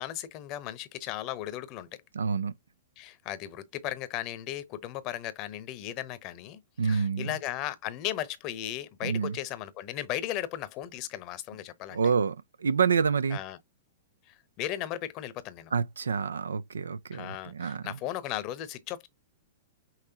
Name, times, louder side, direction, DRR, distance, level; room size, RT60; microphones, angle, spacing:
voice 1, 0.0-1.9 3.0-12.0 13.3-13.6 14.3-15.7 17.1-19.1, left 13 dB, 40° left, 0.9 m, -36 dB
voice 2, 2.1-2.5 6.8-7.3 9.0-9.4 11.9-13.4 15.7-17.9, right 6 dB, 75° right, 0.4 m, -28 dB
5.9 x 3.0 x 2.8 m
figure-of-eight pair, 105°, 0 cm